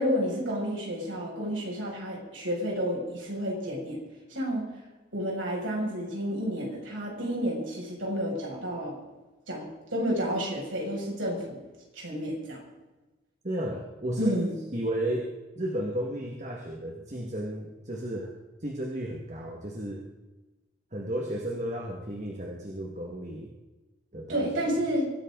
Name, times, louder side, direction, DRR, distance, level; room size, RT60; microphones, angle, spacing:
voice 1, 0.0-4.0 4.3-4.7 5.1-9.0 9.5-11.6 11.9-12.6 14.2-14.6 24.3-25.1, equal, 70° right, -2 dB, 6.7 m, -30 dB
voice 2, 13.4-14.4 14.7-15.3 15.6-18.3 18.6-20.0 20.9-23.5 24.1-24.5, right 1 dB, 35° right, 0 dB, 1.9 m, -33 dB
24.0 x 14.0 x 4.0 m, 1.1 s
head